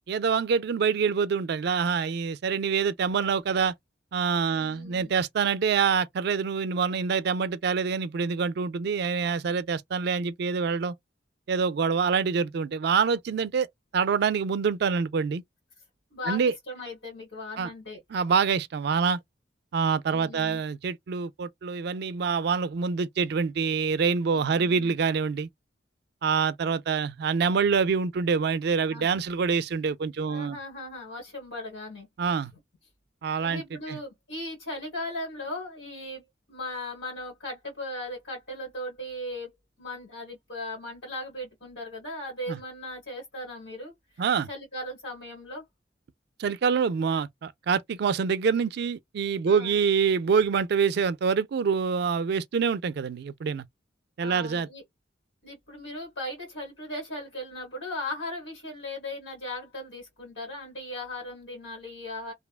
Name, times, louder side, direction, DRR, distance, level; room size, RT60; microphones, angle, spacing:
voice 1, 0.1-3.7 4.1-10.9 11.5-13.7 13.9-15.4 16.3-16.5 17.6-17.7 18.1-19.2 19.7-25.5 26.2-30.6 32.2-32.5 33.2-33.6 33.9-34.0 42.5-42.6 44.2-44.5 46.4-53.6 54.2-54.7, right 6 dB, 60° right, 0.3 m, -26 dB
voice 2, 4.5-5.1 16.1-18.0 20.0-20.6 24.3-24.9 28.8-29.1 30.2-32.1 33.3-39.5 39.8-45.6 49.5-49.8 54.2-54.8 55.4-62.3, left 1 dB, 80° left, 1.8 m, -38 dB
2.7 x 2.2 x 2.3 m
head